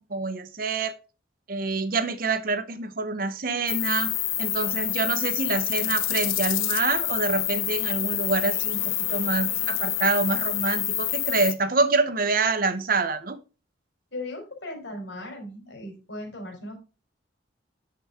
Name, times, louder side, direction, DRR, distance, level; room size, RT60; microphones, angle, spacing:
voice 1, 0.1-0.9 1.5-4.1 4.4-13.4, right 3 dB, 45° right, 0.8 m, -26 dB
sound 1, 3.7-11.5, left 14 dB, 90° left, 0.9 m, -27 dB
voice 2, 14.1-16.8, left 1 dB, 65° left, 4.0 m, -37 dB
9.2 x 6.8 x 3.6 m
head